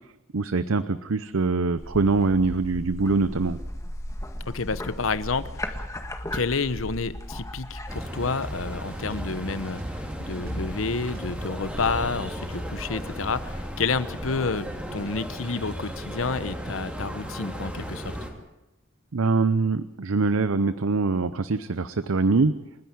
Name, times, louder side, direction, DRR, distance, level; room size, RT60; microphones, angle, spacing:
voice 1, 0.3-3.6 19.1-22.6, right 3 dB, 80° right, 13 dB, 0.7 m, -23 dB
sound 1, 1.8-8.0, left 1 dB, 15° left, 1.7 m, -36 dB
voice 2, 4.5-5.8 6.3-14.7 14.9-18.2, left 4 dB, 75° left, 14 dB, 1.0 m, -29 dB
sound 2, 7.9-18.3, equal, 5° right, 2.9 m, -35 dB
sound 3, 8.4-13.4, equal, 45° right, 2.8 m, -39 dB
29.0 x 10.5 x 9.7 m, 0.99 s
head